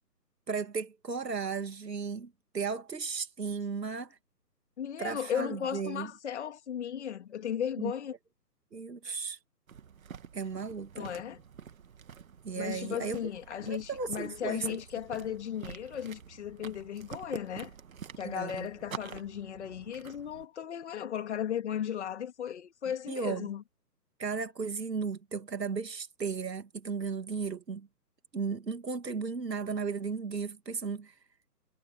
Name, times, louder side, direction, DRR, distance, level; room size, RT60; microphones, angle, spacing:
voice 1, 0.5-4.2 5.0-6.1 7.8-7.9 8.7-9.4 10.3-11.1 12.4-13.3 13.6-14.8 15.1-15.2 18.2-18.7 23.1-23.5 24.2-27.9 28.3-31.2, right 5 dB, 80° right, 2.7 m, -35 dB
voice 2, 4.8-8.1 9.0-9.2 11.0-11.4 12.6-17.7 18.2-23.6, left 9 dB, 45° left, 2.4 m, -36 dB
sound 1, 9.7-20.5, right 7 dB, 55° right, 2.3 m, -47 dB
figure-of-eight pair, 150°, 49 cm